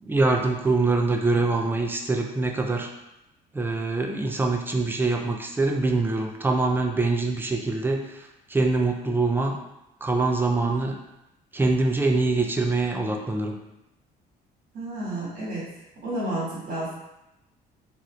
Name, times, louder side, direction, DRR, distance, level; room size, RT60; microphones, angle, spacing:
voice 1, 0.0-2.9 3.5-9.6 10.0-11.0 11.5-13.6, right 3 dB, 10° right, 2 dB, 0.3 m, -24 dB
voice 2, 14.7-15.7 16.0-16.9, right 1 dB, 55° right, -6 dB, 1.5 m, -31 dB
2.7 x 2.5 x 3.0 m, 0.90 s
cardioid pair, 110°, 17 cm